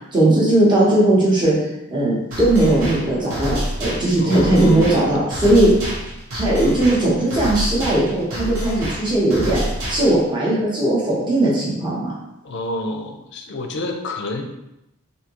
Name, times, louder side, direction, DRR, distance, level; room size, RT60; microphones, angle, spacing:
voice 1, 0.1-1.6 1.9-5.7 6.3-12.1, right 1 dB, 20° right, -6 dB, 0.9 m, -18 dB
sound 1, 2.3-10.3, equal, 65° right, 1.1 m, -28 dB
voice 2, 4.2-5.0 12.4-14.4, left 2 dB, 55° left, 4 dB, 0.5 m, -27 dB
3.5 x 2.7 x 2.9 m, 0.88 s
head